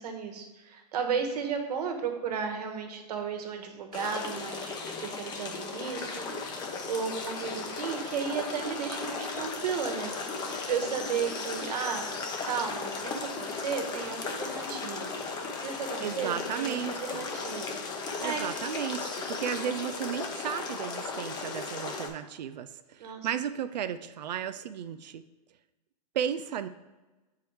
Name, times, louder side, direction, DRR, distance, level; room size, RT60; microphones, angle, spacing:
voice 1, 0.0-6.3 6.9-10.1 10.7-12.1 12.4-15.1 15.6-17.8 18.2-18.4 23.0-23.3, right 6 dB, 70° right, 4 dB, 1.2 m, -34 dB
sound 1, 3.9-22.1, left 4 dB, 20° left, 0.7 m, -36 dB
voice 2, 16.0-17.2 18.2-25.2 26.1-26.7, right 9 dB, 90° right, 11 dB, 0.4 m, -34 dB
6.9 x 4.6 x 3.2 m, 1.1 s
hypercardioid pair, 145°, 21 cm